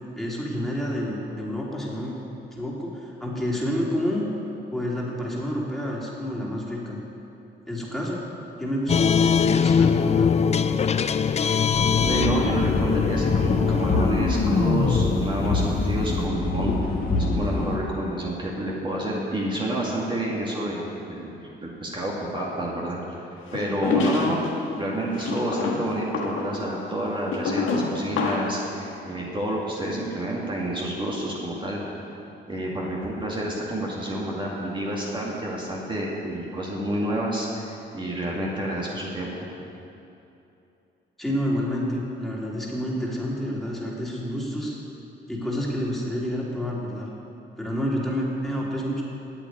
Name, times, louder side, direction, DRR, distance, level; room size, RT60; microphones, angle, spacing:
voice 1, 0.1-2.1 2.5-4.2 4.7-7.0 7.7-8.3 8.6-10.4 41.2-44.8 45.3-47.1 47.6-49.0, equal, ahead, -5 dB, 3.2 m, -29 dB
sound 1, 8.9-16.2, left 6 dB, 35° left, 0.4 m, -23 dB
sound 2, 11.7-17.8, left 2 dB, 50° left, 1.9 m, -25 dB
voice 2, 12.0-16.7 17.3-21.4 21.6-31.8 32.5-39.3, right 1 dB, 25° right, -4 dB, 2.3 m, -29 dB
sound 3, 23.5-24.5 25.2-28.6, left 4 dB, 80° left, 1.5 m, -27 dB
8.6 x 8.4 x 9.4 m, 2.8 s
cardioid pair, 90°, 20 cm